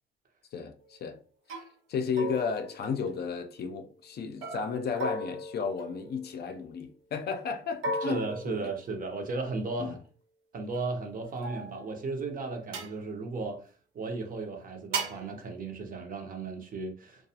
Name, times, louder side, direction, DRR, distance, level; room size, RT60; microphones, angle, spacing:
voice 1, 0.5-1.2 1.5-1.6 1.9-8.7 9.8-10.0, left 5 dB, 55° left, 0.5 m, -33 dB
sound 1, 0.8-1.1 1.5-1.7 2.2-3.5 4.4-6.6 7.8-9.3 10.7-12.0 12.7-13.0 14.9-15.3, right 1 dB, 85° right, 0.7 m, -37 dB
voice 2, 8.0-10.0 10.5-13.7 13.9-17.3, right 3 dB, 45° right, 0.7 m, -35 dB
2.3 x 2.3 x 2.7 m
cardioid pair, 90°, 20 cm